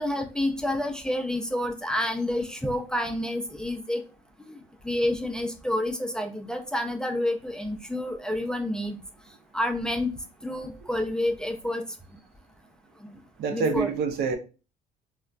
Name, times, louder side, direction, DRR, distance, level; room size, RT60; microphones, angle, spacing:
voice 1, 0.0-4.0 4.5-4.6 4.8-9.0 9.5-10.1 10.4-11.8 13.5-13.9, left 1 dB, 5° left, 0.4 m, -29 dB
voice 2, 13.4-14.4, right 5 dB, 75° right, 0.6 m, -26 dB
4.1 x 2.1 x 2.4 m
cardioid pair, 110°, 17 cm